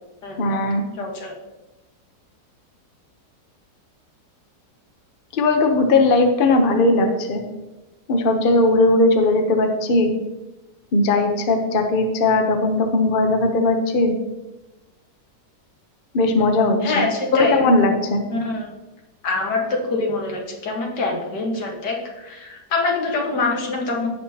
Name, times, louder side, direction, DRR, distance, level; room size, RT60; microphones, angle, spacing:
voice 1, 0.4-0.8 5.3-7.4 8.1-10.1 10.9-14.1 16.1-17.0 17.3-18.2, left 2 dB, 40° left, 5 dB, 0.8 m, -18 dB
voice 2, 1.0-1.3 16.8-17.6 18.3-18.7 19.2-24.1, left 3 dB, 75° left, 0 dB, 2.1 m, -24 dB
16.5 x 5.8 x 2.8 m, 1.1 s
omnidirectional pair, 1.8 m